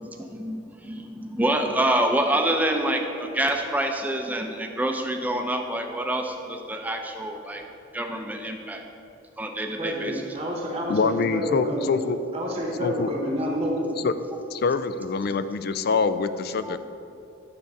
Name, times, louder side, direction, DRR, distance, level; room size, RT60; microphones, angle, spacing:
voice 1, 0.0-7.6 7.9-8.8 9.4-10.1 16.6-16.7, right 1 dB, 10° right, 3 dB, 0.6 m, -27 dB
voice 2, 9.8-12.0 12.3-13.9, equal, 30° right, -1 dB, 1.0 m, -28 dB
voice 3, 10.9-12.2 12.8-13.1 14.0-14.1 14.5-16.8, left 4 dB, 50° left, 12 dB, 0.3 m, -25 dB
9.8 x 3.8 x 6.6 m, 2.7 s
head